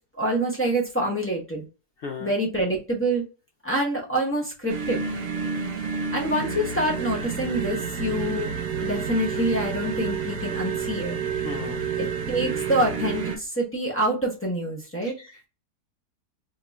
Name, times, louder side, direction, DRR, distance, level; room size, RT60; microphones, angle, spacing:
voice 1, 0.2-1.7 2.2-3.2 3.6-5.1 6.1-11.2 12.0-15.1, right 1 dB, 15° left, -4 dB, 0.4 m, -26 dB
voice 2, 2.0-2.3 11.4-11.8 15.0-15.4, left 5 dB, 75° left, 2 dB, 0.6 m, -36 dB
sound 1, 4.7-13.4, right 6 dB, 90° right, 1.2 m, -29 dB
2.8 x 2.3 x 3.9 m, 0.32 s
omnidirectional pair, 1.7 m